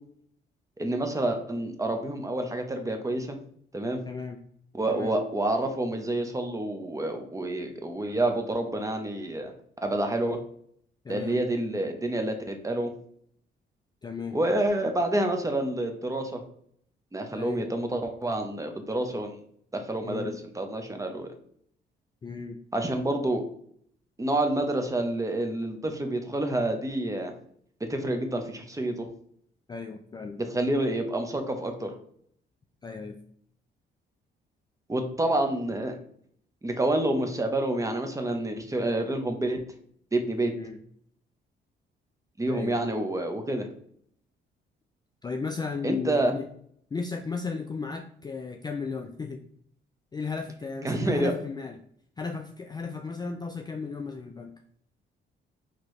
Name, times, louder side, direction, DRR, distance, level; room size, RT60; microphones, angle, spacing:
voice 1, 0.8-3.4 3.7-4.0 4.8-9.5 9.8-10.4 11.1-12.9 14.3-16.4 17.1-19.3 19.7-21.3 22.7-23.4 24.2-27.3 27.9-29.1 30.4-31.9 34.9-36.0 36.6-39.6 40.1-40.5 42.4-43.7 45.8-46.3 50.8-51.3, right 1 dB, 15° right, 5 dB, 0.7 m, -28 dB
voice 2, 4.1-4.4 4.9-5.2 11.0-11.4 14.0-14.4 17.3-17.7 20.0-20.4 22.2-22.6 29.7-30.4 32.8-33.2 40.5-40.8 42.5-42.8 45.2-46.5 46.9-49.4 50.1-51.8 52.2-54.6, left 4 dB, 20° left, 5 dB, 0.3 m, -35 dB
4.4 x 2.9 x 3.1 m, 0.64 s
cardioid pair, 90°, 20 cm